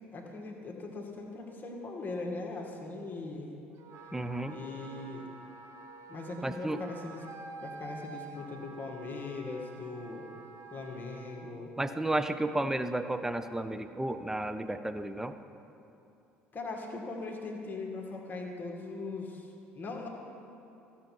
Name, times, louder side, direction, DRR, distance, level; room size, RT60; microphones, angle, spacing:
voice 1, 0.1-3.5 4.5-5.3 6.1-7.3 7.6-10.3 10.7-11.7 16.5-20.1, left 3 dB, 30° left, 0 dB, 1.9 m, -40 dB
Wind instrument woodwind instrument, 3.8-11.5, right 3 dB, 50° right, 0.9 m, -48 dB
voice 2, 4.1-4.5 6.4-6.8 11.8-15.4, right 1 dB, 5° right, 10 dB, 0.6 m, -32 dB
14.5 x 7.0 x 4.6 m, 2.8 s
figure-of-eight pair, 60°, 6 cm